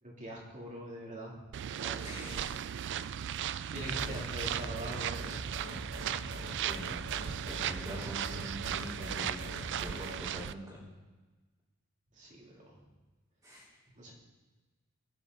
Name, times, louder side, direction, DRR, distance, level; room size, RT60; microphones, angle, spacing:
voice 1, 0.0-2.4 3.7-5.4 12.1-12.7 14.0-14.1, equal, 35° right, -4 dB, 3.4 m, -43 dB
sound 1, 1.5-10.5, right 10 dB, 55° right, 0.4 m, -37 dB
voice 2, 2.0-2.8 6.6-7.0 7.4-10.8 13.4-13.7, equal, 15° right, -11 dB, 3.9 m, -45 dB
sound 2, 3.8-10.3, right 1 dB, 75° right, 2.6 m, -43 dB
20.5 x 9.8 x 4.2 m, 1.2 s
head